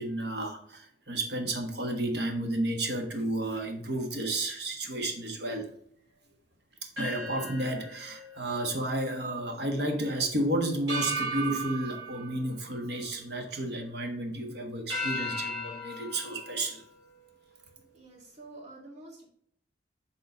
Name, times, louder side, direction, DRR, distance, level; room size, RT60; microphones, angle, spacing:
voice 1, 0.0-5.7 7.0-16.8, right 1 dB, 65° right, 4 dB, 1.2 m, -32 dB
sound 1, 7.0-9.4 9.8-9.9 10.9-13.4 13.8-14.3 14.9-17.7, right 1 dB, 85° right, 2.9 m, -37 dB
voice 2, 17.9-19.3, right 2 dB, 40° right, -3 dB, 2.2 m, -48 dB
6.7 x 3.7 x 5.1 m, 0.65 s
head